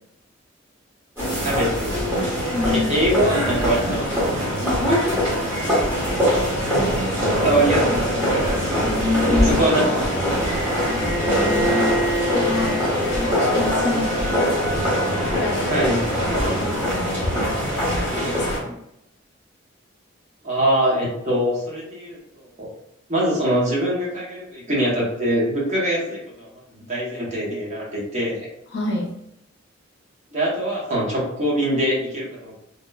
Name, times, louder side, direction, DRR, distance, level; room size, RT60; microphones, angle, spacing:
sound 1, 1.2-18.6, equal, 15° right, 1.1 m, -22 dB
voice 1, 1.4-2.0 2.6-4.2 4.9-5.9 7.4-8.0 9.4-10.3 15.7-16.0 20.4-22.2 22.6-22.7 23.1-28.5 30.3-32.6, right 1 dB, 35° right, -5 dB, 0.8 m, -23 dB
voice 2, 2.5-2.9 8.8-9.6 10.9-11.9 12.2-12.8 13.2-14.6 15.1-15.9 16.2-17.4 17.9-18.7 28.7-29.1, left 2 dB, 65° left, 0 dB, 0.6 m, -28 dB
Bowed string instrument, 11.0-16.9, equal, 10° left, 0.9 m, -29 dB
2.8 x 2.0 x 2.2 m, 0.82 s
head